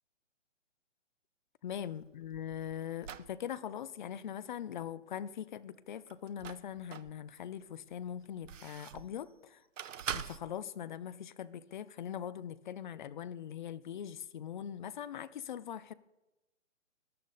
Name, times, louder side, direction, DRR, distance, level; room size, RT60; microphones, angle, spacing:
voice 1, 1.6-9.6 10.1-15.9, left 9 dB, 40° left, 18 dB, 0.7 m, -41 dB
sound 1, 1.7-3.3 6.1-7.1 7.7-9.2 9.8-10.4, right 8 dB, 85° right, 0.9 m, -43 dB
20.5 x 10.5 x 4.1 m, 1.0 s
hypercardioid pair, 155°, 37 cm